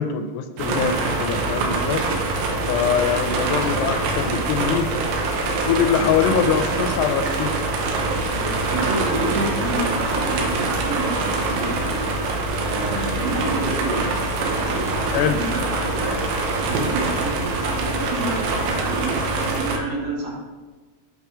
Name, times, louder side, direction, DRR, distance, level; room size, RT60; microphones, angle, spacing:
voice 1, 0.0-2.1 2.7-4.9 5.6-7.7 15.1-15.4, left 8 dB, 85° left, 8 dB, 2.7 m, -23 dB
sound 1, 0.6-19.8, right 3 dB, 85° right, 3.2 m, -24 dB
voice 2, 8.3-12.0 12.6-14.2 14.5-16.1 16.6-20.4, right 2 dB, 60° right, -4 dB, 3.1 m, -29 dB
8.3 x 4.7 x 4.9 m, 1.3 s
omnidirectional pair, 4.9 m